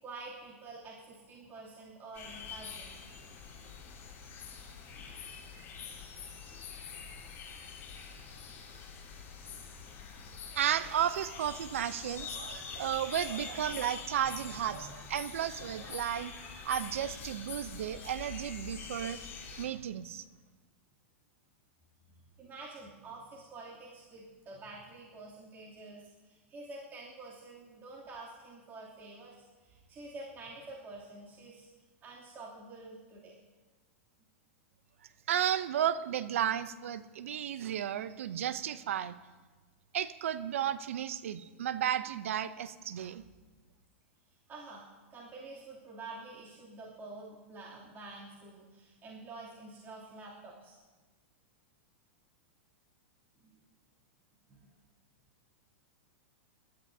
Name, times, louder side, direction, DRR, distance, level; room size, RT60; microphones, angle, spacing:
voice 1, 0.0-3.0 4.9-5.3 14.6-14.9 15.6-15.7 22.1-31.7 32.0-33.3 44.5-50.8 53.4-53.5 54.5-54.7, right 3 dB, 30° right, -6 dB, 2.9 m, -48 dB
sound 1, 2.1-19.6, left 6 dB, 35° left, 4.0 m, -45 dB
voice 2, 10.5-16.4 16.6-19.2 19.5-20.2 35.3-39.1 39.9-43.2, right 10 dB, 75° right, 14 dB, 0.7 m, -33 dB
24.5 x 12.5 x 2.8 m, 1.3 s
hypercardioid pair, 120°, 7 cm